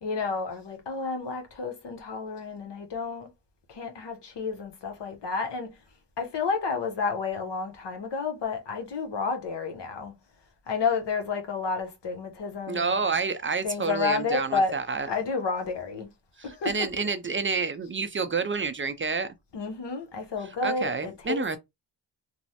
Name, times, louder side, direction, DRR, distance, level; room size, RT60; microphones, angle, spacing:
voice 1, 0.0-3.3 3.7-5.8 6.2-10.1 10.7-13.0 13.6-16.1 16.4-16.9 19.5-21.6, left 4 dB, 75° left, 0.9 m, -31 dB
voice 2, 12.7-15.1 16.6-19.3 20.6-21.6, right 4 dB, 30° right, 0.4 m, -28 dB
3.0 x 2.0 x 2.8 m
cardioid pair, 60°, 42 cm